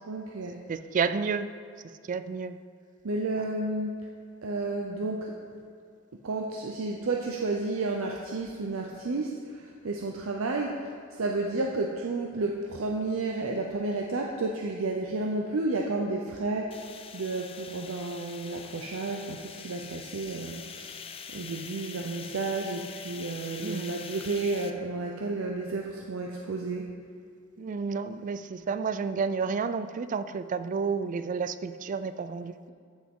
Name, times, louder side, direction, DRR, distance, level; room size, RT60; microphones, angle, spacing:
voice 1, 0.1-0.6 3.0-4.0 4.4-5.3 6.2-10.9 11.2-16.8 17.1-20.9 21.3-26.9, right 3 dB, 85° right, 1 dB, 0.6 m, -31 dB
voice 2, 0.7-1.5 2.1-2.6 23.6-24.0 27.6-32.5, right 5 dB, 40° right, 13 dB, 0.3 m, -30 dB
sound 1, 16.7-24.7, left 6 dB, 30° left, 0.4 m, -44 dB
13.5 x 6.2 x 3.7 m, 2.2 s
head